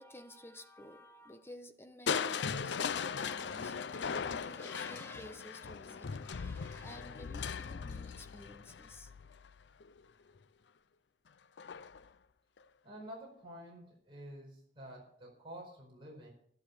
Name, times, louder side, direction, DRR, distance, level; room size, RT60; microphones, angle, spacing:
voice 1, 0.0-9.1, left 1 dB, 15° left, 1.1 m, -52 dB
Crushing, 2.1-10.0 11.6-12.1 12.6-12.7, left 6 dB, 80° left, 0.6 m, -39 dB
voice 2, 12.8-16.3, right 1 dB, 30° right, 4.8 m, -49 dB
12.0 x 12.0 x 6.9 m
head